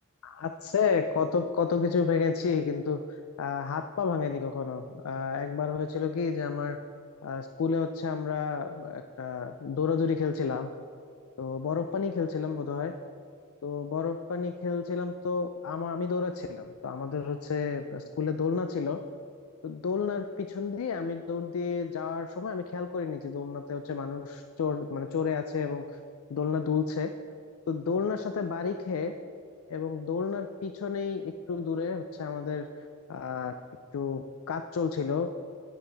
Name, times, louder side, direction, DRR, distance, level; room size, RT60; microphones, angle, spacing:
voice 1, 0.2-6.8 7.2-10.7 11.4-12.9 13.6-19.0 19.6-25.8 26.3-27.1 27.7-29.1 29.7-32.7 33.1-33.5 33.9-35.3, left 5 dB, 90° left, 8 dB, 0.4 m, -31 dB
10.0 x 9.4 x 3.4 m, 2.3 s
head